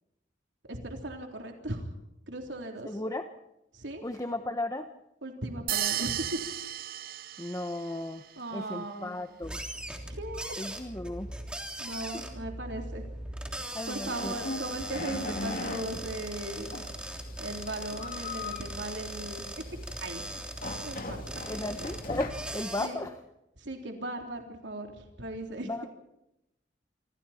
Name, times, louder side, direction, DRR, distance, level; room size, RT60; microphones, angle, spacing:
voice 1, 0.6-1.9 2.3-2.9 3.7-4.0 5.2-6.4 8.4-9.1 10.1-10.6 11.8-13.0 13.9-16.7 17.4-19.5 20.0-20.2 20.8-21.2 22.8-23.1 23.6-25.7, right 1 dB, 85° right, 2 dB, 3.6 m, -37 dB
voice 2, 2.8-3.3 4.0-4.9 7.4-8.2 8.5-9.6 10.6-11.3 13.7-14.3 21.5-23.1 25.6-25.9, left 1 dB, 20° left, 7 dB, 1.0 m, -35 dB
sound 1, 5.7-8.0, right 12 dB, 55° right, 0.8 m, -33 dB
sound 2, 9.4-22.9, right 1 dB, 5° right, 3.3 m, -40 dB
sound 3, 13.5-22.3, left 2 dB, 50° left, 2.7 m, -40 dB
26.5 x 26.5 x 4.4 m, 0.88 s
head